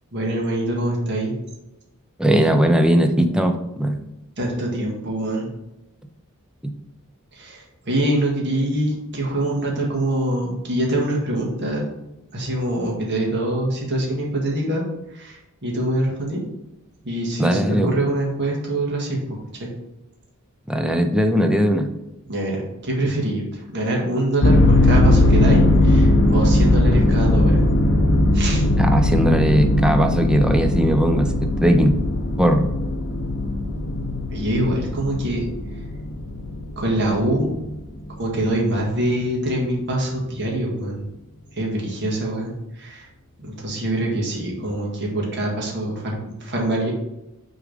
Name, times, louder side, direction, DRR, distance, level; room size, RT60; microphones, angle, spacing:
voice 1, 0.1-1.3 4.4-5.5 7.4-11.9 12.3-14.8 15.2-16.4 17.0-19.2 19.6-19.7 22.3-23.4 23.7-27.6 28.3-28.6 34.3-35.4 36.8-37.5 38.2-41.0 41.6-43.1 43.4-46.9, right 1 dB, 50° right, -2 dB, 1.9 m, -24 dB
voice 2, 2.2-4.0 17.4-17.9 20.7-21.9 28.8-32.0 32.4-32.6, equal, 5° right, 5 dB, 0.5 m, -19 dB
sound 1, 24.4-37.7, left 1 dB, 55° left, 0.7 m, -19 dB
6.6 x 3.7 x 5.0 m, 0.94 s
head